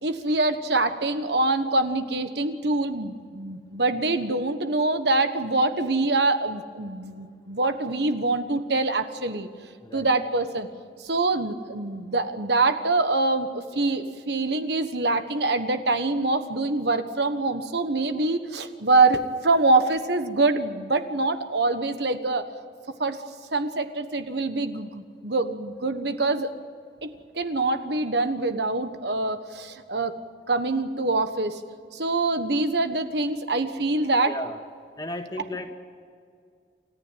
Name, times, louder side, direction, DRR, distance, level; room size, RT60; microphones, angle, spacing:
voice 1, 0.0-9.5 9.9-10.7 11.0-22.4 23.0-23.2 23.5-26.5 27.0-27.1 27.3-30.1 30.5-31.6 31.9-34.3, right 2 dB, 65° right, 9 dB, 1.3 m, -25 dB
voice 2, 34.2-34.6 35.0-35.7, left 1 dB, 20° left, 4 dB, 2.0 m, -34 dB
29.0 x 14.5 x 9.2 m, 2.2 s
head